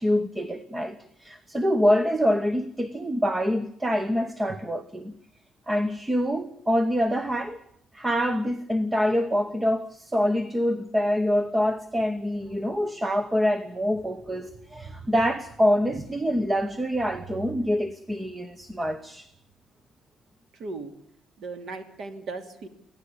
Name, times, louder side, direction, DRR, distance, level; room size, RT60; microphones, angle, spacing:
voice 1, 0.0-5.1 5.7-7.6 7.9-19.3, equal, 10° right, 1.0 m, -25 dB
voice 2, 20.5-20.9 21.4-22.7, right 3 dB, 50° right, 3.0 m, -37 dB
25.0 x 16.5 x 8.5 m
cardioid pair, 175°, 0 cm